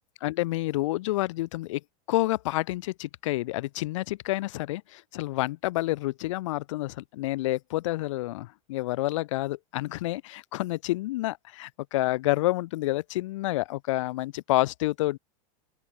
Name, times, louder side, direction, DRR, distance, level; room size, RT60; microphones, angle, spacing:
voice 1, 0.2-1.8 2.1-15.2, left 18 dB, 50° left, 0.4 m, -29 dB
open air
supercardioid pair, 180°, 20 cm